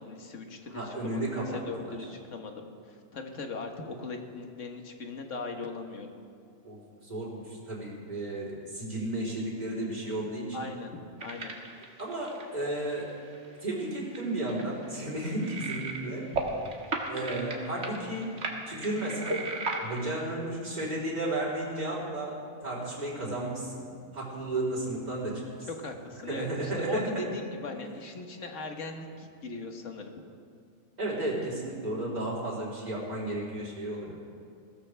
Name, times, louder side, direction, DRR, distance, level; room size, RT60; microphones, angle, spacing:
voice 1, 0.0-2.1 2.3-6.1 10.5-11.5 25.7-30.1 34.1-34.2, left 3 dB, 60° left, 4 dB, 1.6 m, -39 dB
voice 2, 0.7-2.0 6.6-10.6 12.0-13.1 13.6-16.2 17.1-18.3 18.7-19.4 19.8-22.4 22.6-23.9 24.1-25.7 26.2-27.2 31.0-34.2, right 1 dB, 30° right, -7 dB, 3.9 m, -33 dB
sound 1, 11.2-13.5 13.8-13.9 14.1-16.1 16.3-20.1, right 3 dB, 55° right, 1.8 m, -35 dB
21.0 x 16.5 x 3.4 m, 2.3 s
omnidirectional pair, 1.4 m